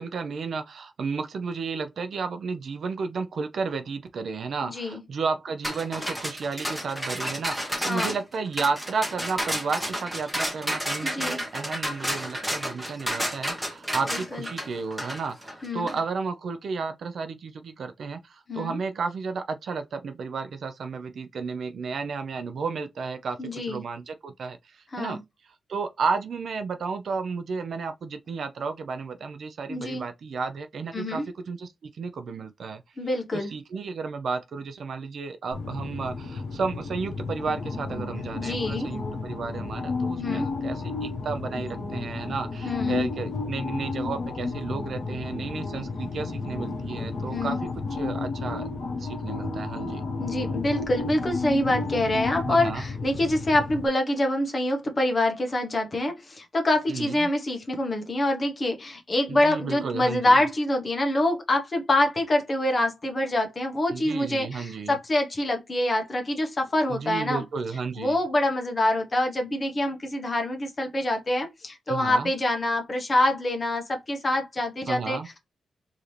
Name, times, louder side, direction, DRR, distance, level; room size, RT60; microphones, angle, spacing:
voice 1, 0.0-25.2 25.7-32.8 33.3-47.6 47.9-48.7 49.0-50.0 52.4-52.8 56.9-57.3 59.3-60.4 63.9-65.0 66.9-68.2 71.9-72.3 74.9-75.3, right 5 dB, 60° right, 0.5 m, -32 dB
voice 2, 4.6-5.0 7.9-8.2 11.0-11.4 14.1-14.5 15.6-15.9 18.5-18.8 23.4-23.8 24.9-25.2 29.7-30.0 30.9-31.3 33.0-33.5 38.3-38.9 40.2-40.5 42.6-43.0 47.3-47.6 50.2-67.4 68.0-75.4, left 1 dB, 30° left, 0.9 m, -26 dB
sound 1, 5.6-16.0, equal, ahead, 1.1 m, -31 dB
sound 2, 35.5-53.9, left 3 dB, 65° left, 0.9 m, -32 dB
4.8 x 2.7 x 3.2 m
wide cardioid pair, 140°, 0 cm